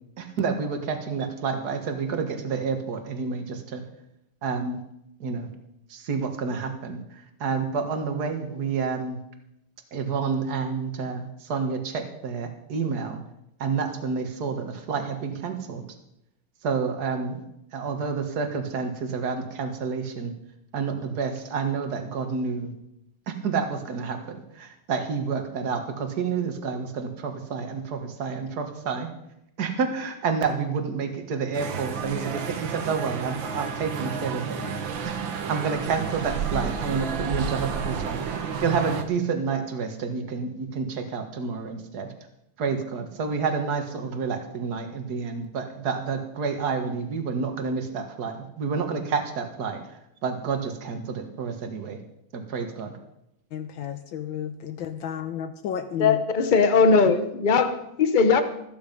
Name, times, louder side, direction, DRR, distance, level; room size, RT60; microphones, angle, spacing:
voice 1, 0.2-3.8 4.4-4.8 5.2-5.5 5.9-9.2 9.9-13.2 13.6-15.8 16.6-17.4 17.7-20.3 20.7-22.7 23.3-29.1 29.6-34.6 35.0-42.1 42.6-49.8 50.2-52.0 52.3-52.9, right 5 dB, 50° right, 2.0 m, -29 dB
sound 1, 31.5-39.0, right 6 dB, 65° right, 1.9 m, -31 dB
voice 2, 53.5-56.2, left 9 dB, 70° left, 1.5 m, -32 dB
voice 3, 56.0-58.4, left 5 dB, 35° left, 0.7 m, -19 dB
14.0 x 13.0 x 5.3 m
omnidirectional pair, 2.3 m